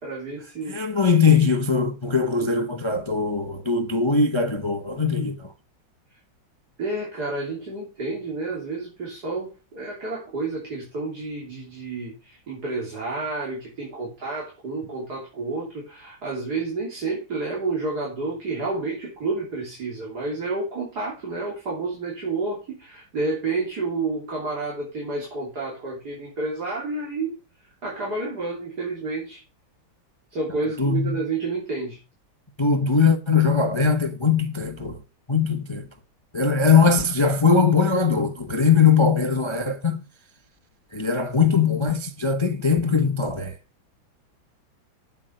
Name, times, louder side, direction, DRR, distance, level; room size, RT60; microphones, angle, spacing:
voice 1, 0.0-0.8 6.8-27.3 27.8-29.4 30.3-32.0, right 3 dB, 50° right, 3.8 m, -30 dB
voice 2, 0.7-5.4 30.8-31.2 32.6-35.0 35.3-35.8 36.3-40.0 40.9-43.5, left 5 dB, 30° left, 0.5 m, -20 dB
8.3 x 8.2 x 6.5 m
omnidirectional pair, 2.2 m